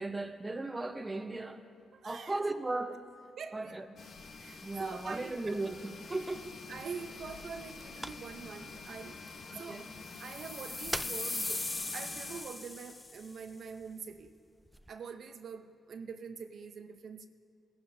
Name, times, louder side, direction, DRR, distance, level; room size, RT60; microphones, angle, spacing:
voice 1, 0.0-1.6 2.0-3.0 3.5-3.9 4.6-6.5 9.5-9.9, right 2 dB, 25° right, 1.0 m, -36 dB
voice 2, 1.9-2.4 3.4-3.8 4.4-5.6 6.7-9.2 9.6-9.8 10.2-11.7 11.9-14.3 14.9-17.3, right 6 dB, 65° right, 0.7 m, -45 dB
sound 1, 4.0-12.4, left 4 dB, 65° left, 1.1 m, -48 dB
sound 2, 6.1-14.9, equal, 5° right, 0.4 m, -49 dB
sound 3, 10.1-13.3, left 2 dB, 30° left, 0.9 m, -39 dB
21.0 x 11.5 x 2.7 m
cardioid pair, 65°, 0 cm